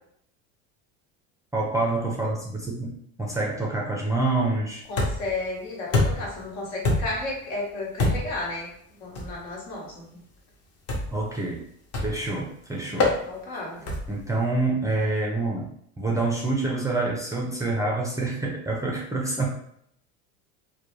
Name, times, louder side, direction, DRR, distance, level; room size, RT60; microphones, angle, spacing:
voice 1, 1.5-2.9 3.2-4.8 11.1-11.6 12.0-13.1 14.1-15.7 16.0-19.5, right 2 dB, 10° right, -2 dB, 0.3 m, -27 dB
voice 2, 4.9-8.7 9.0-10.2 12.9-13.8, left 2 dB, 80° left, -2 dB, 1.1 m, -33 dB
sound 1, 5.0-5.4 5.9-6.4 6.8-7.3 8.0-8.4 9.1-9.4 10.9-11.2 11.9-12.3 13.0-13.2 13.9-14.2, left 2 dB, 40° left, 0.7 m, -25 dB
2.3 x 2.1 x 3.0 m, 0.70 s
supercardioid pair, 105°, 38 cm